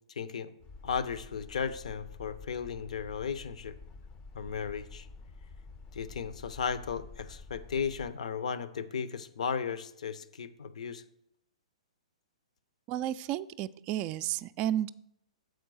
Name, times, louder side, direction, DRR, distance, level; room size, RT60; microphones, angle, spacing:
voice 1, 0.1-0.5 0.8-3.7 4.3-5.1 5.9-11.0, left 6 dB, 75° left, 13 dB, 0.7 m, -35 dB
sound 1, 0.6-8.1, left 4 dB, 25° left, 0.5 m, -49 dB
voice 2, 12.9-14.9, right 12 dB, 30° right, 13 dB, 0.3 m, -32 dB
7.8 x 4.6 x 6.2 m, 0.73 s
hypercardioid pair, 130°, 4 cm